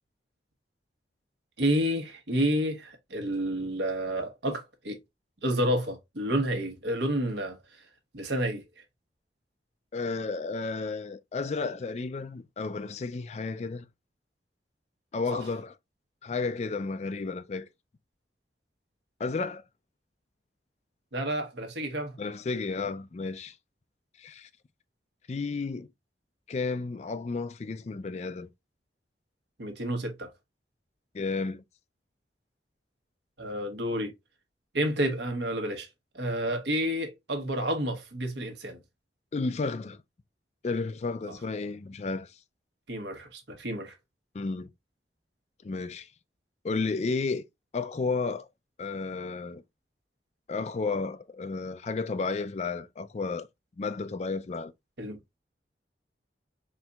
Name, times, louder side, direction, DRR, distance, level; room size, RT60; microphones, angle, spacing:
voice 1, 1.6-5.0 5.4-7.6 8.1-8.6 15.3-15.4 21.1-22.2 29.6-30.3 33.4-34.1 34.7-35.9 36.1-38.8 41.3-41.4 42.9-43.9 55.0-55.2, right 1 dB, 80° right, 1.2 m, -30 dB
voice 2, 9.9-13.9 15.1-15.7 16.2-17.7 19.2-19.6 22.2-23.5 24.2-24.5 25.3-25.9 26.5-28.5 31.1-31.6 39.3-40.0 40.6-42.3 44.3-44.7 45.6-46.1 46.6-47.4 47.7-48.5 48.8-49.6 50.5-53.5 53.8-54.7, left 4 dB, 40° left, 0.3 m, -32 dB
4.3 x 4.0 x 2.3 m
head